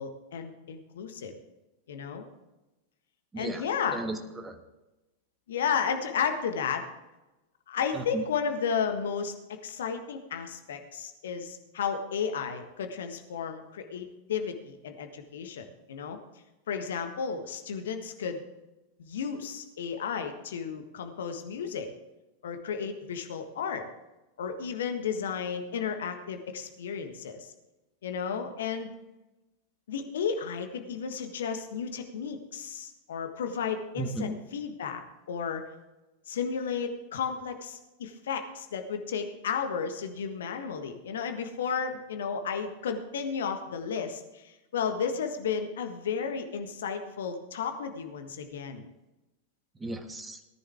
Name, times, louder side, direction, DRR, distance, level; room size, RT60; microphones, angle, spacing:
voice 1, 0.0-1.3 1.9-2.3 3.4-4.0 5.5-6.9 7.7-9.3 9.6-16.2 16.7-18.4 19.0-21.9 22.4-23.8 24.4-27.5 28.0-28.9 29.9-35.0 35.3-35.6 36.3-48.9, left 6 dB, 60° left, 6 dB, 1.5 m, -33 dB
voice 2, 3.3-3.6 3.9-4.5 7.9-8.2 34.0-34.4 49.8-50.4, right 2 dB, 10° right, 7 dB, 1.4 m, -35 dB
18.0 x 10.5 x 3.5 m, 1.0 s
figure-of-eight pair, 90°, 0 cm